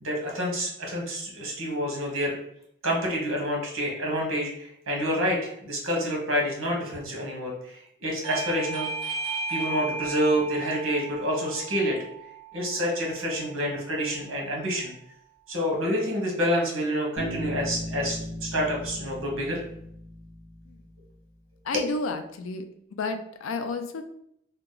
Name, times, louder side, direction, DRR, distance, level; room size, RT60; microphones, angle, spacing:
voice 1, 0.0-2.3 2.8-8.9 9.5-12.0 12.5-14.9 15.5-19.6, equal, 75° right, -1 dB, 1.1 m, -28 dB
Bell / Doorbell, 8.2-13.4, right 4 dB, 25° right, 0.7 m, -35 dB
Bass guitar, 17.2-20.9, equal, 40° left, 0.9 m, -37 dB
voice 2, 21.6-22.7 22.9-24.0, left 3 dB, 75° left, 8 dB, 0.4 m, -31 dB
2.8 x 2.2 x 3.8 m, 0.73 s
head